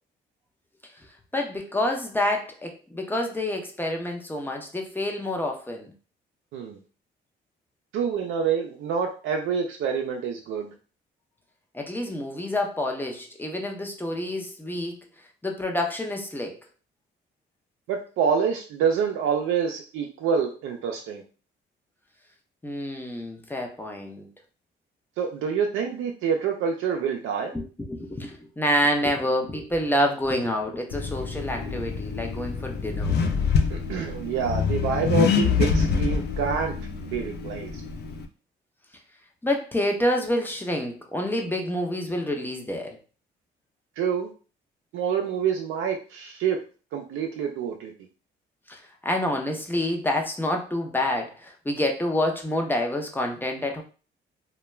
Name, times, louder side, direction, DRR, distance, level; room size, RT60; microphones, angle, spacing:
voice 1, 1.3-5.9 11.7-15.0 15.4-16.6 22.6-24.3 27.5-33.2 39.4-43.0 48.7-53.8, left 1 dB, 10° left, 2 dB, 0.5 m, -28 dB
voice 2, 7.9-10.7 17.9-21.2 25.2-27.5 33.7-36.7 37.1-37.7 44.0-44.3 44.9-46.6 46.9-47.9, right 6 dB, 80° right, 2 dB, 0.4 m, -27 dB
Accelerating revving vroom, 30.9-38.2, left 5 dB, 60° left, 0.4 m, -26 dB
2.2 x 2.2 x 3.0 m, 0.36 s
cardioid pair, 90°, 20 cm